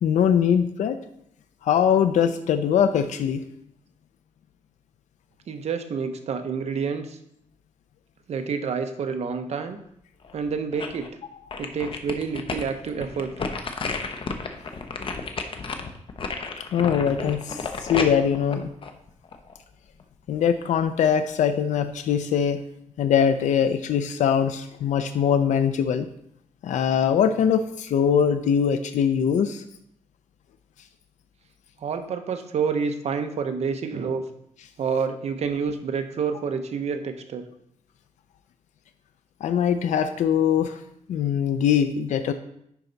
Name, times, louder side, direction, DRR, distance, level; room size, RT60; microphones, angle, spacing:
voice 1, 0.0-1.0 1.6-3.4 16.7-18.7 20.3-22.6 23.0-26.1 26.6-29.6 39.4-40.8 41.1-42.3, left 8 dB, 75° left, 9 dB, 0.5 m, -22 dB
voice 2, 5.5-7.2 8.3-9.8 10.3-11.1 11.6-13.3 31.8-34.2 34.8-37.5, right 5 dB, 60° right, 7 dB, 0.9 m, -28 dB
sound 1, 10.2-11.1 11.5-19.6 20.0-20.1, left 4 dB, 45° left, 0.8 m, -32 dB
10.5 x 4.5 x 4.0 m, 0.73 s
cardioid pair, 125°, 13 cm